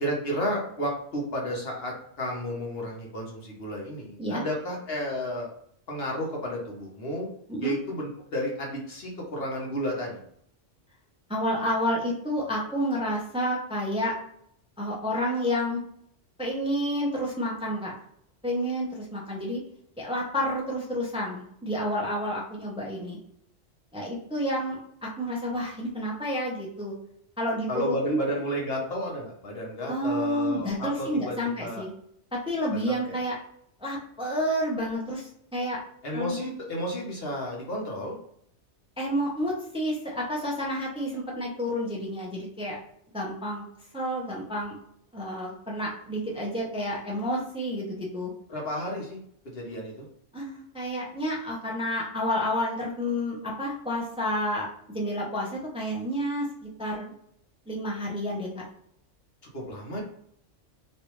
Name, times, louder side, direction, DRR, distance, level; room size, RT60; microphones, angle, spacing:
voice 1, 0.0-5.5 5.9-7.3 7.6-10.2 27.7-31.8 32.7-33.2 36.0-38.2 48.5-49.2 49.4-50.1 59.5-60.0, equal, 55° left, -2 dB, 1.1 m, -32 dB
voice 2, 11.3-14.1 14.8-15.8 16.4-17.9 18.4-19.6 20.0-23.2 23.9-26.9 27.4-28.2 29.9-31.9 32.3-33.4 33.8-35.8 36.1-36.3 39.0-42.8 43.1-43.6 43.9-44.8 45.1-48.3 50.3-57.1 57.7-58.6, equal, 5° right, -4 dB, 0.7 m, -30 dB
3.1 x 2.6 x 3.0 m, 0.69 s
omnidirectional pair, 1.2 m